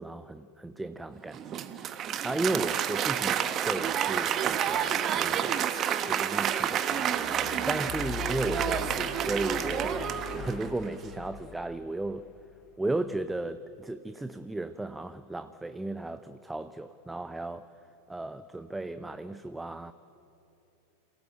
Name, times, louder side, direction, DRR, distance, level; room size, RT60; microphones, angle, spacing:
voice 1, 0.0-1.4 1.8-1.9 2.2-5.7 6.0-7.2 7.7-12.2 12.8-17.7 18.1-19.9, right 2 dB, 5° right, 12 dB, 0.6 m, -35 dB
Applause, 1.3-10.9, right 9 dB, 30° right, 1.2 m, -29 dB
sound 1, 7.1-12.5, left 7 dB, 30° left, 1.2 m, -41 dB
28.0 x 18.0 x 7.9 m, 2.8 s
figure-of-eight pair, 90°, 0 cm